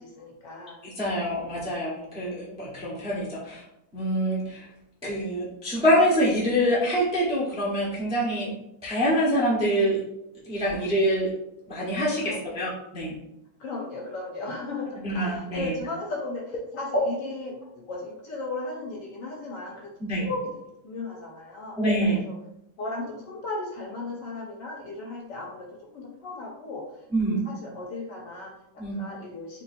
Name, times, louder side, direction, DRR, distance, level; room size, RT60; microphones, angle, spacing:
voice 1, 0.0-0.8 10.7-10.8 12.3-12.6 13.6-20.5 20.8-21.8 22.2-22.3 22.8-25.7 25.9-26.9 27.4-29.6, left 2 dB, 65° left, -1 dB, 1.2 m, -36 dB
voice 2, 0.8-3.6 3.9-4.7 5.0-8.5 8.8-10.0 10.5-11.3 11.7-13.1 15.0-15.7 16.9-17.0 20.0-20.2 21.8-22.2 27.1-27.4 28.8-29.0, equal, 5° right, -7 dB, 0.4 m, -25 dB
4.5 x 3.0 x 2.6 m, 0.82 s
omnidirectional pair, 2.4 m